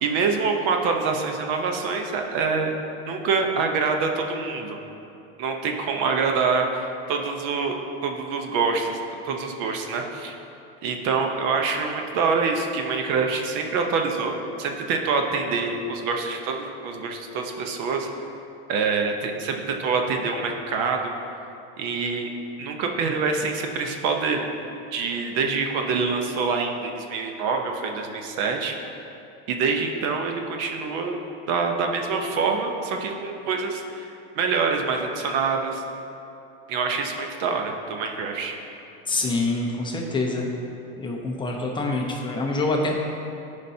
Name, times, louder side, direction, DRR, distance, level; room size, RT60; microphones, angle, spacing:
voice 1, 0.0-2.7 3.1-4.8 5.4-7.8 8.0-10.4 10.8-18.3 18.7-21.1 21.8-22.3 22.6-24.5 24.9-28.8 29.5-31.2 31.5-35.8 36.7-38.6, right 4 dB, 55° right, 3 dB, 0.9 m, -26 dB
voice 2, 39.1-40.5 41.0-43.0, left 2 dB, 15° left, 0 dB, 0.7 m, -26 dB
14.5 x 5.1 x 2.8 m, 2.8 s
supercardioid pair, 145°, 30 cm